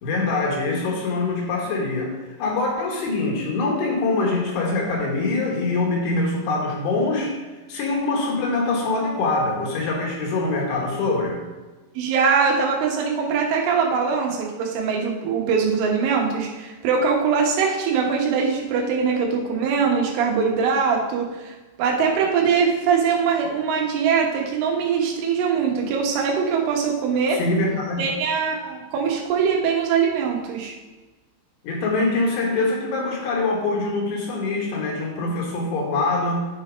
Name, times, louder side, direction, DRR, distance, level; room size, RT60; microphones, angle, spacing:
voice 1, 0.0-2.1 2.4-7.4 7.7-11.4 27.3-28.1 31.6-36.5, left 3 dB, 70° left, -1 dB, 3.3 m, -24 dB
voice 2, 12.0-27.4 28.0-30.7, right 6 dB, 85° right, 0 dB, 3.8 m, -22 dB
10.5 x 4.5 x 5.0 m, 1.2 s
omnidirectional pair, 5.4 m